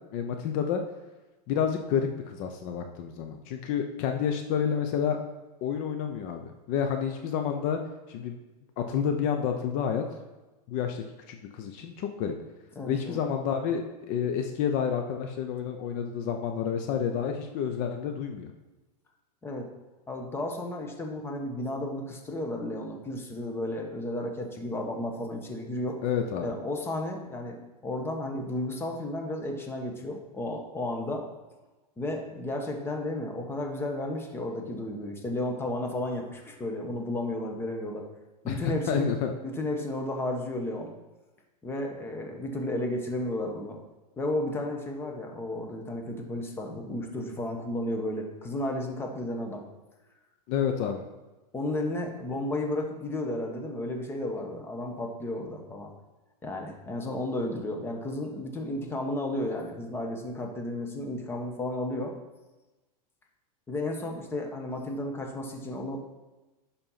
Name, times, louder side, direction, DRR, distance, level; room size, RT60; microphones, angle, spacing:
voice 1, 0.1-0.8 1.5-5.2 5.6-7.8 8.1-8.4 8.8-10.0 10.7-12.4 12.9-18.5 26.0-26.5 38.5-39.3 50.5-51.0, left 7 dB, 40° left, 5 dB, 0.8 m, -29 dB
voice 2, 12.7-13.2 19.4-19.7 20.1-26.0 26.4-27.6 27.8-31.3 32.0-38.0 38.4-39.1 39.4-40.9 41.6-43.8 44.2-49.6 51.5-55.9 56.4-62.1 63.7-66.0, left 1 dB, 10° left, 2 dB, 1.2 m, -33 dB
10.5 x 4.3 x 5.8 m, 1.1 s
supercardioid pair, 150°, 20 cm